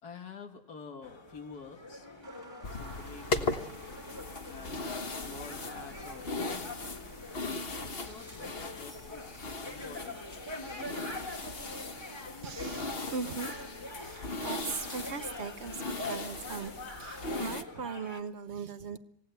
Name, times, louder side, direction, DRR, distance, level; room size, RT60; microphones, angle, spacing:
voice 1, 0.0-2.1 2.7-3.7 4.5-7.0 7.8-10.2, left 5 dB, 80° left, 4 dB, 2.1 m, -49 dB
sound 1, 1.0-18.2, left 2 dB, 15° left, 2.1 m, -45 dB
Applause, 2.2-17.6, right 3 dB, 80° right, 5.3 m, -59 dB
sound 2, 2.6-17.6, left 3 dB, 40° left, 1.5 m, -38 dB
voice 2, 12.4-16.7 17.0-19.0, right 5 dB, 50° right, 11 dB, 1.2 m, -39 dB
27.5 x 17.5 x 8.0 m, 0.80 s
omnidirectional pair, 1.6 m